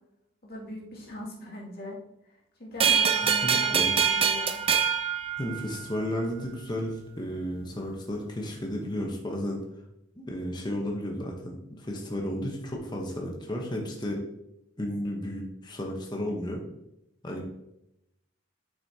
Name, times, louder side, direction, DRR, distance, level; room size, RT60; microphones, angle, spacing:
voice 1, 0.4-2.0 2.2-4.6 17.2-17.4, left 1 dB, 50° left, -4 dB, 2.3 m, -40 dB
sound 1, 2.8-6.0, right 7 dB, 30° right, 0.4 m, -25 dB
voice 2, 3.2-3.9 5.4-9.6 10.2-14.2 14.8-16.6 17.2-17.4, equal, 20° left, 0 dB, 1.0 m, -33 dB
8.1 x 6.2 x 2.8 m, 0.84 s
head